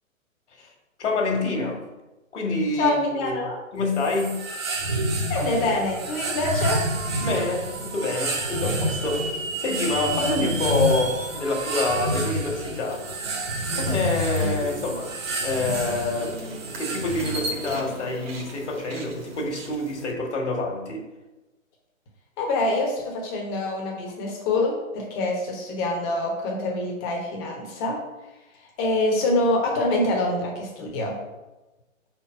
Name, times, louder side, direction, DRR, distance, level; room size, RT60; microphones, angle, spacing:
voice 1, 1.0-1.8 2.3-4.4 7.2-9.3 9.6-13.1 13.7-21.1, left 2 dB, 55° left, 1 dB, 1.7 m, -27 dB
voice 2, 2.8-3.6 5.3-6.9 22.4-28.0 28.8-31.1, left 2 dB, 20° left, 0 dB, 1.1 m, -25 dB
sound 1, 3.9-17.8, right 1 dB, 20° right, 0.6 m, -29 dB
sound 2, 6.5-12.1, right 4 dB, 75° right, 1.2 m, -35 dB
sound 3, 12.4-20.1, right 1 dB, 45° right, 1.6 m, -39 dB
5.0 x 4.5 x 5.1 m, 1.1 s
figure-of-eight pair, 140°, 40 cm